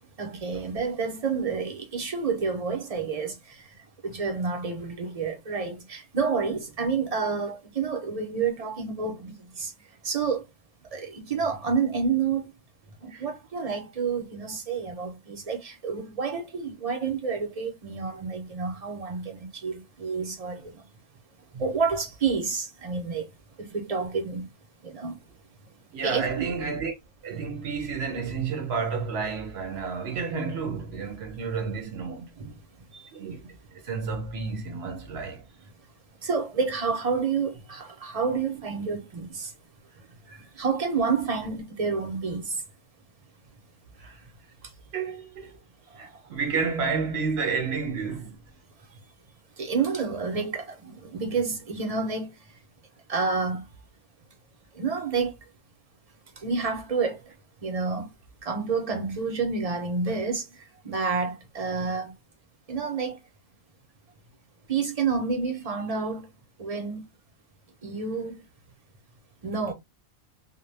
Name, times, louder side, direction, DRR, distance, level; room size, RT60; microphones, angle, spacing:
voice 1, 0.2-3.6 4.0-9.7 10.0-10.4 10.9-12.5 13.0-20.8 21.5-23.3 23.6-24.5 24.8-25.2 26.0-26.5 32.4-32.5 32.9-33.1 36.2-39.5 40.3-42.6 46.0-46.1 49.6-52.3 53.1-53.6 54.7-55.3 56.4-57.2 57.6-58.1 58.4-60.4 60.8-62.1 62.7-63.2 64.7-66.3 66.6-67.1 67.8-68.4 69.4-69.7, right 5 dB, 40° right, 0.6 m, -29 dB
voice 2, 25.9-26.9 27.2-32.3 33.1-33.6 33.8-35.4 44.9-45.6 46.0-48.4, right 5 dB, 70° right, 0.9 m, -30 dB
2.2 x 2.1 x 3.1 m
omnidirectional pair, 1.1 m